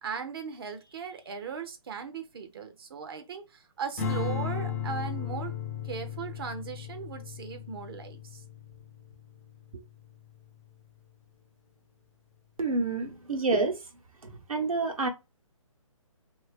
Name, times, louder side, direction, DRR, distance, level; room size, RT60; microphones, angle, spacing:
voice 1, 0.0-5.5 5.8-8.4 9.7-9.8, right 6 dB, 45° right, 0.7 m, -38 dB
Strum, 4.0-10.4, left 8 dB, 25° left, 0.5 m, -36 dB
voice 2, 12.6-13.8 14.2-15.1, right 3 dB, 80° right, 1.2 m, -28 dB
2.8 x 2.7 x 3.2 m
figure-of-eight pair, 140°, 18 cm